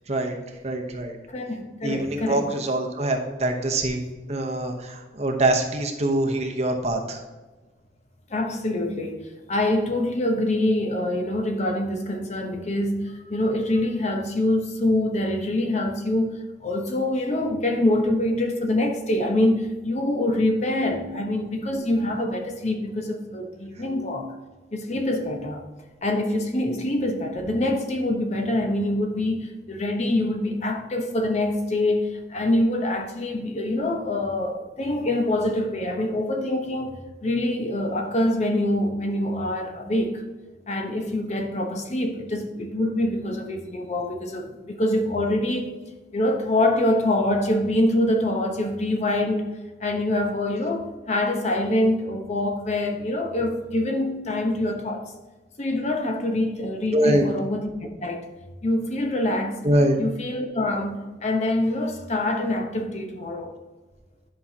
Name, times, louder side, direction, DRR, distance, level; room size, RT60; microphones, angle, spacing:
voice 1, 0.1-0.4 0.6-1.2 1.8-7.2 56.9-57.3 59.6-60.0, right 1 dB, 40° right, 0.9 m, -24 dB
voice 2, 1.3-2.5 8.3-24.3 24.7-25.7 26.0-40.2 40.7-45.8 46.1-49.5 49.8-55.0 55.6-58.3 58.6-59.6 60.0-63.5, left 1 dB, 40° left, 0.9 m, -25 dB
10.5 x 5.9 x 2.8 m
head